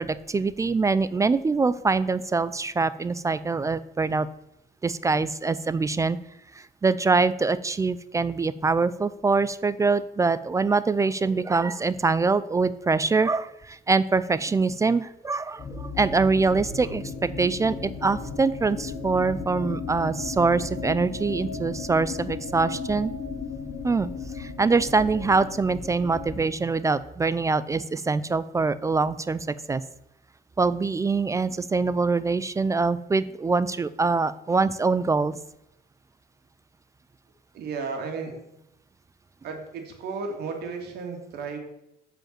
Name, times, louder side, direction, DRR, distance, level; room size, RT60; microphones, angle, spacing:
voice 1, 0.0-4.3 4.8-6.2 6.5-23.1 23.8-24.1 24.4-29.8 30.6-35.4, right 4 dB, 20° right, 16 dB, 0.3 m, -24 dB
sound 1, 15.6-26.4, left 4 dB, 50° left, 2.6 m, -35 dB
voice 2, 37.5-38.4 39.4-41.6, right 4 dB, 70° right, 3 dB, 2.2 m, -34 dB
7.7 x 5.1 x 7.3 m, 0.84 s
cardioid pair, 110°, 17 cm